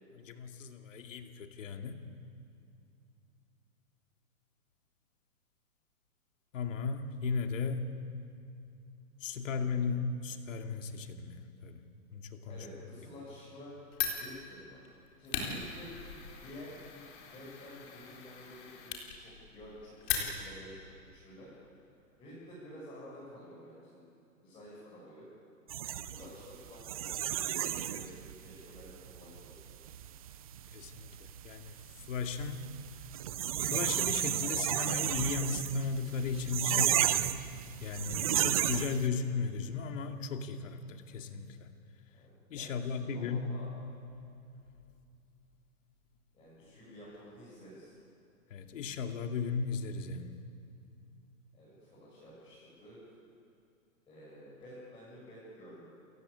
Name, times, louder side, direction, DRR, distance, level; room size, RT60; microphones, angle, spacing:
voice 1, 0.3-2.0 6.5-7.8 9.2-11.8 12.1-12.6 30.7-31.7 32.1-32.6 33.6-37.1 37.8-41.7 42.5-43.5 48.5-50.3, left 5 dB, 60° left, 5 dB, 2.5 m, -36 dB
voice 2, 9.2-9.9 12.5-13.8 14.1-14.8 15.2-15.9 16.4-16.8 17.3-21.5 22.2-24.0 24.4-25.3 26.1-29.7 42.1-43.7 46.3-47.9 51.5-53.1 54.1-55.9, equal, 10° left, -8 dB, 7.4 m, -51 dB
Fire, 13.9-20.7, left 7 dB, 35° left, 3.9 m, -39 dB
sound 1, 25.7-39.1, right 11 dB, 25° right, 0.5 m, -33 dB
29.5 x 15.5 x 8.7 m, 2.6 s
hypercardioid pair, 160°, 43 cm